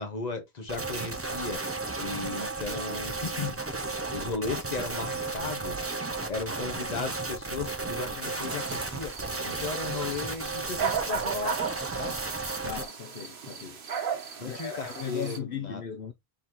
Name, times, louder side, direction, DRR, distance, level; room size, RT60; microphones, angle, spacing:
voice 1, 0.0-1.6 2.0-3.8 4.1-5.9 6.3-9.1 9.4-11.6 12.0-12.2 14.4-15.8, left 4 dB, 40° left, 1.2 m, -35 dB
sound 1, 0.7-12.9, right 3 dB, 15° right, 0.5 m, -34 dB
sound 2, 8.0-9.1 9.5-10.6 11.1-11.7, right 3 dB, 45° right, 1.5 m, -47 dB
sound 3, 8.4-15.4, right 7 dB, 60° right, 1.0 m, -36 dB
voice 2, 12.6-13.8 14.4-16.1, left 8 dB, 65° left, 0.8 m, -37 dB
4.0 x 3.7 x 2.9 m
omnidirectional pair, 1.1 m